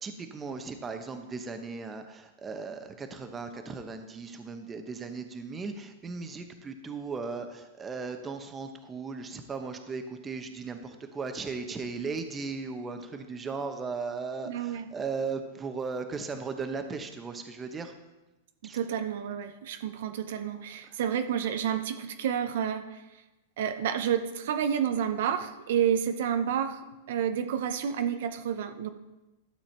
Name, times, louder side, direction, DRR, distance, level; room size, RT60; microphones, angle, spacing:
voice 1, 0.0-17.9 18.6-18.8 20.9-21.0, right 4 dB, 15° right, 6 dB, 0.9 m, -37 dB
voice 2, 14.5-14.9 18.7-23.0 23.6-26.8 27.1-28.9, right 8 dB, 70° right, 8 dB, 0.7 m, -29 dB
12.0 x 7.0 x 4.5 m, 1.0 s
supercardioid pair, 140°, 0 cm